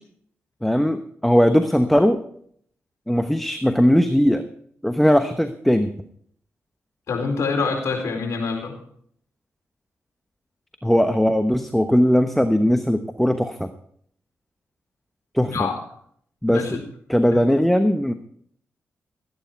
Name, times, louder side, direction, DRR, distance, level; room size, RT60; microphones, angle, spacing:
voice 1, 0.6-2.2 3.1-4.5 4.8-5.9 10.8-13.7 15.3-15.7 16.4-16.8 17.1-18.1, equal, 5° left, 8 dB, 1.0 m, -19 dB
voice 2, 7.1-8.7 15.4-15.8 16.5-16.8 17.3-17.4, left 4 dB, 75° left, 1 dB, 4.4 m, -25 dB
15.5 x 9.9 x 4.5 m, 0.63 s
cardioid pair, 65°, 5 cm